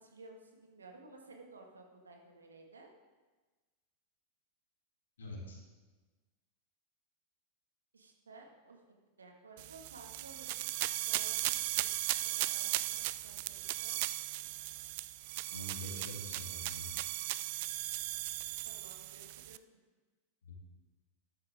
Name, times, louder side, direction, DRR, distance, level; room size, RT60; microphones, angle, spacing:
voice 1, 0.0-2.9 7.9-8.8 9.2-10.7 11.0-11.9 12.3-14.0 18.6-19.6, right 3 dB, 75° right, 1 dB, 2.0 m, -55 dB
voice 2, 5.2-5.6 15.5-16.9 20.4-20.5, left 1 dB, 65° left, -2 dB, 3.1 m, -45 dB
sound 1, 9.6-19.6, right 17 dB, 50° right, 0.4 m, -37 dB
13.0 x 11.5 x 3.7 m, 1.3 s
figure-of-eight pair, 90°, 0 cm